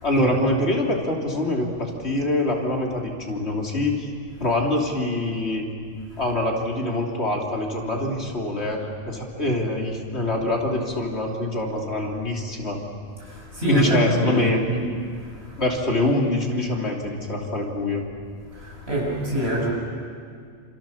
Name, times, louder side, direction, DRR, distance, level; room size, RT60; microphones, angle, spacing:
voice 1, 0.0-4.1 4.4-5.7 6.2-12.8 13.7-14.6 15.6-18.0, left 1 dB, 60° left, 0 dB, 3.4 m, -24 dB
voice 2, 13.6-14.4 14.7-14.8 18.6-19.7, right 1 dB, 55° right, -3 dB, 7.8 m, -24 dB
28.0 x 27.5 x 7.2 m, 2.2 s
omnidirectional pair, 1.2 m